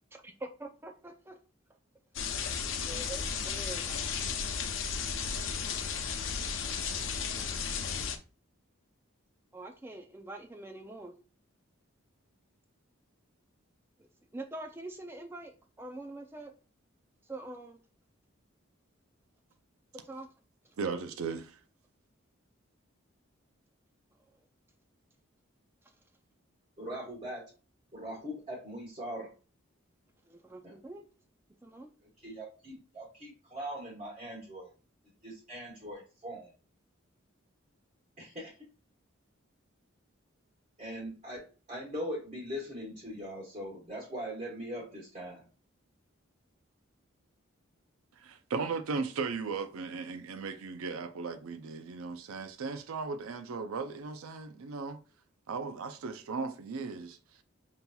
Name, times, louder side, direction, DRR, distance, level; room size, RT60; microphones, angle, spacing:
voice 1, 0.1-1.4 2.9-4.0 7.4-7.5 9.5-11.1 14.0-14.1 14.3-16.5 17.3-17.8 20.0-20.3 30.3-31.1 31.6-31.9, right 2 dB, 10° right, 0.3 m, -44 dB
sound 1, 2.2-8.2, left 6 dB, 65° left, 0.5 m, -34 dB
voice 2, 20.8-21.5 48.2-55.0 55.5-57.2, right 4 dB, 90° right, 0.5 m, -36 dB
voice 3, 26.8-27.5 27.9-29.3 30.6-30.8 32.2-34.7 35.2-36.5 38.2-38.6 40.8-45.5, equal, 35° right, 1.2 m, -41 dB
5.5 x 2.8 x 2.2 m
head